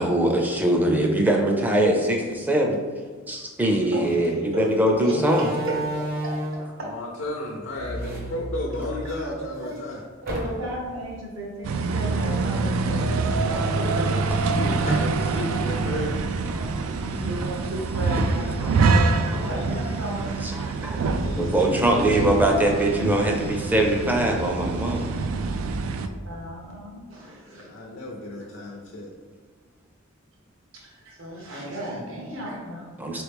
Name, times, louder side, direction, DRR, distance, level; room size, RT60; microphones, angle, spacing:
voice 1, 0.0-2.8 3.3-5.5 14.9-15.0 16.5-16.8 18.6-19.4 20.4-25.1 33.0-33.2, right 1 dB, 10° right, 1 dB, 0.4 m, -23 dB
voice 2, 3.9-4.6 5.0-5.2 6.2-6.3 6.8-6.9 10.2-14.7 16.5-20.2 26.2-27.7 30.7-32.9 33.1-33.2, right 1 dB, 70° right, -2 dB, 1.1 m, -35 dB
Slam, 4.1-4.3 5.1-6.7 7.7-9.1 9.5-9.6 10.2-10.9, right 1 dB, 45° right, 0.8 m, -31 dB
voice 3, 6.8-10.0 14.7-16.2 19.3-20.3 21.1-23.1 27.7-29.1, left 1 dB, 70° left, -1 dB, 0.5 m, -34 dB
sound 1, 11.6-26.1, right 3 dB, 90° right, 0.3 m, -25 dB
4.2 x 3.0 x 3.4 m, 1.5 s
head